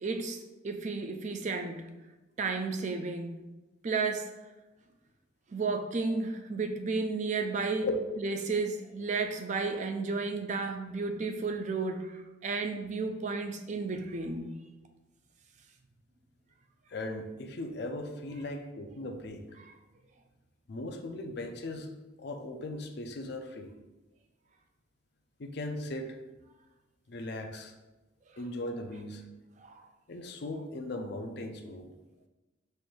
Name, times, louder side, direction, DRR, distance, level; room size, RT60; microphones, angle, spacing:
voice 1, 0.0-1.8 2.4-3.4 3.8-4.3 5.5-7.9 8.2-14.5 19.6-19.7 29.6-29.8, right 4 dB, 35° right, 6 dB, 0.4 m, -33 dB
voice 2, 16.9-19.4 20.7-21.9 22.2-23.7 25.4-26.2 27.1-27.7 28.4-29.2 30.1-31.9, left 1 dB, 55° left, 5 dB, 0.5 m, -38 dB
4.4 x 2.6 x 4.7 m, 1.1 s
head